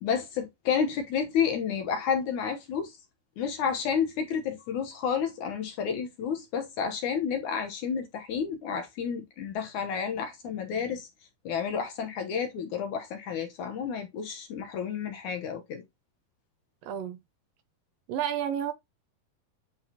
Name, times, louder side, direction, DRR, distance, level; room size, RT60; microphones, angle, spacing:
voice 1, 0.0-3.0 3.4-11.1 11.5-15.8, left 7 dB, 65° left, 2.2 m, -30 dB
voice 2, 16.8-17.2 18.1-18.7, right 9 dB, 75° right, 2.4 m, -30 dB
9.8 x 4.7 x 2.9 m
omnidirectional pair, 4.4 m